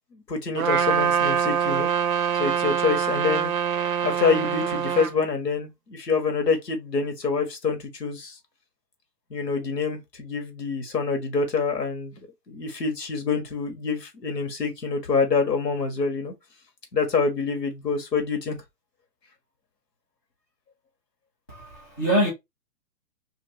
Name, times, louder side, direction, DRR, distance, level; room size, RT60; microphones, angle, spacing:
voice 1, 0.1-1.9 2.4-3.5 4.0-8.4 9.3-12.1 12.5-16.3 16.9-18.6, left 4 dB, 80° left, 1.3 m, -26 dB
Trumpet, 0.6-5.1, right 8 dB, 55° right, 0.6 m, -24 dB
voice 2, 21.5-22.3, right 1 dB, 15° left, 0.4 m, -24 dB
2.6 x 2.4 x 3.2 m
figure-of-eight pair, 130°, 49 cm